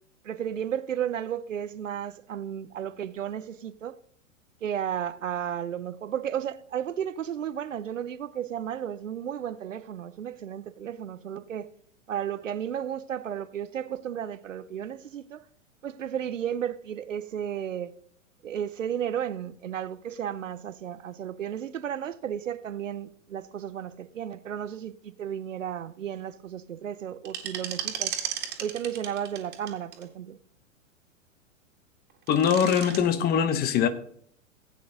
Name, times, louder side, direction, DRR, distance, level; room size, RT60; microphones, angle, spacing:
voice 1, 0.2-4.0 4.6-11.7 12.1-15.4 15.8-17.9 18.4-28.1 28.6-30.4, right 9 dB, 70° right, 0.8 m, -33 dB
sound 1, 27.2-30.0 32.1-33.0, right 9 dB, 25° right, 2.1 m, -34 dB
voice 2, 32.3-33.9, left 8 dB, 25° left, 0.9 m, -22 dB
16.0 x 8.6 x 3.8 m
figure-of-eight pair, 100°, 39 cm